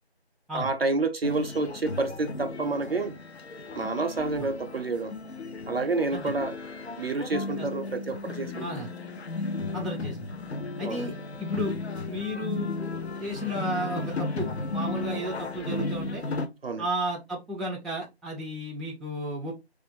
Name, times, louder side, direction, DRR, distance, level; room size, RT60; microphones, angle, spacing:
voice 1, 0.5-3.2 3.7-5.1 5.7-6.6 7.0-8.7 10.8-11.0 16.6-16.8, right 3 dB, 65° right, 0.4 m, -29 dB
sound 1, 1.2-16.5, left 3 dB, 75° left, 0.5 m, -35 dB
voice 2, 8.6-8.9 9.7-10.2 10.8-11.1 11.4-11.8 12.1-16.2 16.8-19.5, equal, ahead, 0.4 m, -33 dB
2.4 x 2.2 x 2.6 m
figure-of-eight pair, 175°, 33 cm